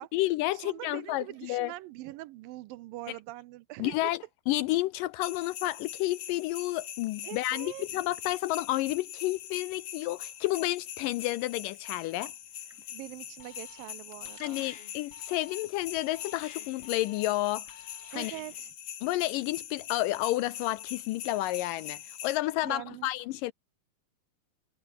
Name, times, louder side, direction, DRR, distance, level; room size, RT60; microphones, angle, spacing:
voice 1, 0.0-1.7 3.8-12.3 14.4-17.6 18.2-18.4 19.0-23.5, left 17 dB, 80° left, 2.0 m, -31 dB
voice 2, 0.5-4.1 7.2-7.9 12.9-14.7 18.1-18.7 22.6-23.1, right 17 dB, 75° right, 2.3 m, -43 dB
sound 1, 5.2-22.4, left 10 dB, 60° left, 3.2 m, -43 dB
sound 2, 9.8-10.8 11.0-11.1 11.4-11.9 12.2-12.4 12.7-12.9 13.8-14.5, right 2 dB, 20° right, 5.9 m, -59 dB
Alarm, 13.4-14.0 14.2-18.7, left 7 dB, 45° left, 2.6 m, -51 dB
omnidirectional pair, 4.4 m